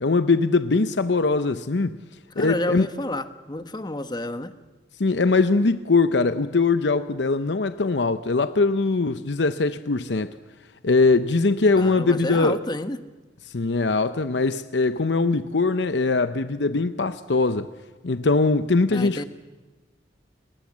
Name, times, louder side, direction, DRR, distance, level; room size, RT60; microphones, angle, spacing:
voice 1, 0.0-2.0 2.4-2.9 5.0-10.3 10.8-12.6 13.5-17.7 18.0-19.2, left 3 dB, 70° left, 0.8 m, -21 dB
voice 2, 2.4-4.5 11.7-13.0 18.9-19.2, left 1 dB, 25° left, 1.2 m, -30 dB
30.0 x 20.0 x 7.4 m
head